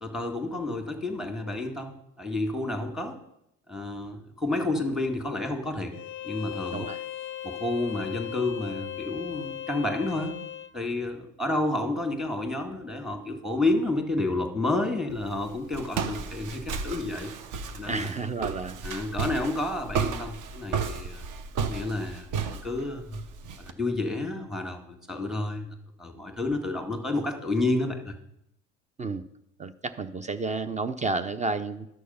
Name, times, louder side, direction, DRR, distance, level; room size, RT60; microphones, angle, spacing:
voice 1, 0.0-3.2 3.7-5.9 6.2-6.9 7.4-10.4 10.7-17.3 17.7-18.1 18.8-21.2 21.6-23.2 23.6-28.1, left 2 dB, ahead, 4 dB, 2.0 m, -30 dB
Bowed string instrument, 5.9-10.7, left 12 dB, 30° left, 0.6 m, -38 dB
voice 2, 6.7-7.0 17.8-19.0 29.0-29.2 29.6-31.9, right 3 dB, 20° right, 12 dB, 0.5 m, -31 dB
Walk footsteps, 15.1-23.7, right 5 dB, 50° right, 1.1 m, -33 dB
11.5 x 6.4 x 5.6 m, 0.80 s
hypercardioid pair, 75°, 41 cm